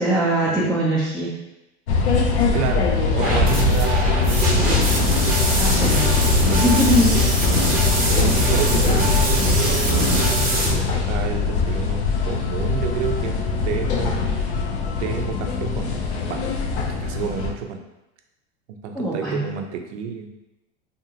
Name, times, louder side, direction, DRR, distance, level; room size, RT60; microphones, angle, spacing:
voice 1, 0.0-1.4 5.6-7.2 18.9-19.5, right 1 dB, ahead, -10 dB, 0.5 m, -22 dB
sound 1, 1.9-17.5, left 5 dB, 70° left, 0.6 m, -21 dB
voice 2, 2.5-5.1 8.1-13.4 13.6-14.4 15.0-15.9 16.3-16.4 16.7-17.8 18.7-20.3, right 7 dB, 70° right, 4 dB, 0.5 m, -29 dB
sound 2, 3.2-10.7, right 2 dB, 25° right, 0.8 m, -23 dB
2.6 x 2.5 x 2.8 m, 0.95 s
hypercardioid pair, 105°, 35 cm